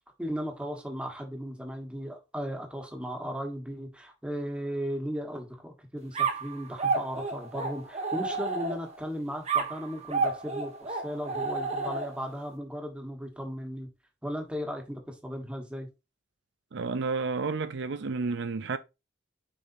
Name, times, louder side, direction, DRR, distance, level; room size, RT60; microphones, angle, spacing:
voice 1, 0.2-13.9 14.2-15.9, equal, 5° right, 1.5 m, -36 dB
sound 1, 6.1-9.0 9.5-12.3, right 4 dB, 35° right, 1.3 m, -31 dB
voice 2, 16.7-18.8, right 4 dB, 65° right, 0.5 m, -31 dB
6.8 x 5.4 x 2.7 m
head